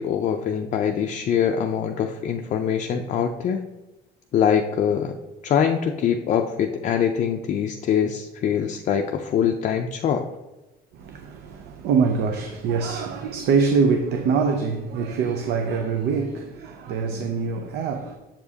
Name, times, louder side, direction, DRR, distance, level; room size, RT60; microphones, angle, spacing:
voice 1, 0.0-3.6 4.3-5.2 5.4-10.3, left 8 dB, 45° left, 0.4 m, -23 dB
voice 2, 10.9-18.2, right 5 dB, 75° right, 0.5 m, -24 dB
7.1 x 4.8 x 2.8 m
cardioid pair, 110°, 17 cm